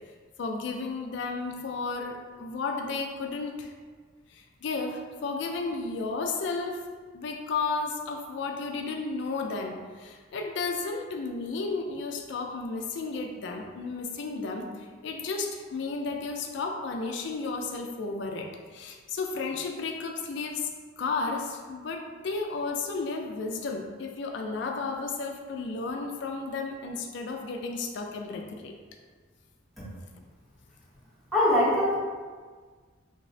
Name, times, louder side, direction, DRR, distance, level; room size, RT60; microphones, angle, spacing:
voice 1, 0.4-3.7 4.3-6.9 7.1-14.7 15.0-20.7 21.0-28.7, left 4 dB, 60° left, 3 dB, 0.3 m, -33 dB
voice 2, 31.3-31.9, left 1 dB, ahead, -11 dB, 0.7 m, -22 dB
3.8 x 2.0 x 2.6 m, 1.5 s
head